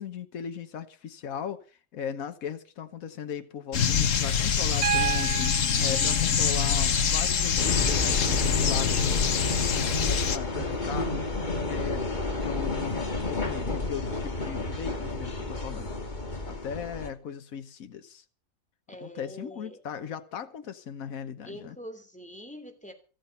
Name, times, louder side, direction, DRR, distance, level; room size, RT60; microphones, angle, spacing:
voice 1, 0.0-11.3 11.7-12.1 12.3-15.9 16.4-18.2 19.0-21.8, left 7 dB, 85° left, 1.5 m, -38 dB
sound 1, 3.7-10.4, left 7 dB, 65° left, 1.5 m, -25 dB
Piano, 4.8-8.8 10.4-10.5, right 10 dB, 75° right, 1.5 m, -34 dB
sound 2, 7.6-17.1, left 2 dB, 35° left, 2.3 m, -31 dB
voice 2, 18.9-19.8 21.4-22.9, equal, 5° left, 2.9 m, -44 dB
14.5 x 14.0 x 5.5 m
omnidirectional pair, 1.4 m